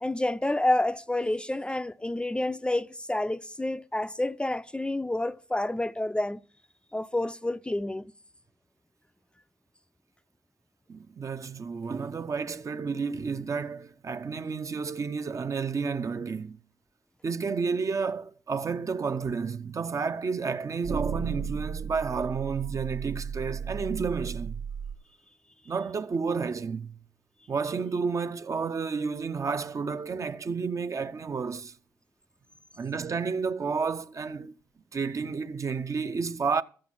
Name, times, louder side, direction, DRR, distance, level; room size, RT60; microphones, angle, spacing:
voice 1, 0.0-6.4 6.9-8.0, left 1 dB, 15° left, 0.4 m, -29 dB
voice 2, 10.9-16.6 17.2-24.6 25.7-26.9 27.5-31.7 32.8-34.5 34.9-36.6, right 5 dB, 45° right, 0.6 m, -31 dB
sound 1, 19.2-19.4 20.8-25.0, right 6 dB, 70° right, 0.9 m, -34 dB
12.5 x 7.7 x 5.8 m
supercardioid pair, 55°, 8 cm